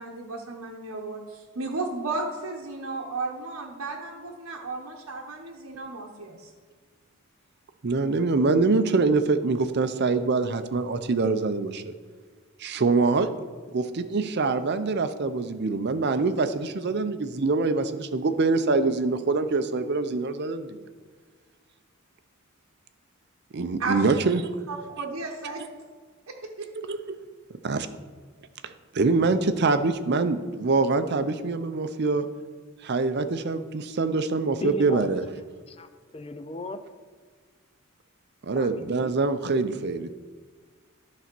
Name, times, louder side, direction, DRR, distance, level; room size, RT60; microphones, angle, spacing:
voice 1, 0.0-6.5 23.8-24.3 24.7-25.6 26.6-26.7, right 3 dB, 70° right, -1 dB, 0.9 m, -34 dB
voice 2, 7.8-11.9 12.6-13.3 13.7-20.8 23.5-24.4 26.9-27.0 27.6-27.9 28.6-32.3 32.8-35.2 38.4-40.1, right 3 dB, 50° right, 9 dB, 0.6 m, -24 dB
voice 3, 34.6-35.2 35.7-36.8 38.5-39.2, left 2 dB, 25° left, 10 dB, 0.5 m, -36 dB
10.5 x 4.1 x 6.0 m, 1.5 s
head